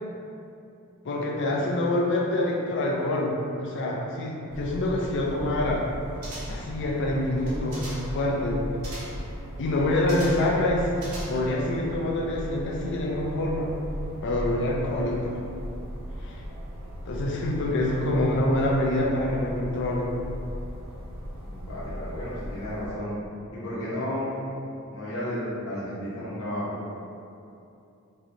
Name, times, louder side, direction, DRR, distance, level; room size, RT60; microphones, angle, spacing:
voice 1, 1.0-5.9 6.5-8.6 9.6-10.9 11.3-13.7 14.2-15.4 16.2-16.4 17.1-20.1, left 1 dB, 55° left, -1 dB, 0.5 m, -26 dB
sound 1, 4.5-22.9, equal, 65° right, 0.6 m, -37 dB
sound 2, 6.2-6.7 7.4-8.2 8.8-9.3 10.1-10.5 11.0-11.6 11.9-12.0, right 1 dB, 80° right, 1.1 m, -41 dB
voice 2, 21.4-23.1 23.5-24.3 24.9-25.4 25.7-26.7, left 1 dB, 75° left, -10 dB, 1.1 m, -33 dB
4.5 x 3.0 x 2.6 m, 2.7 s
head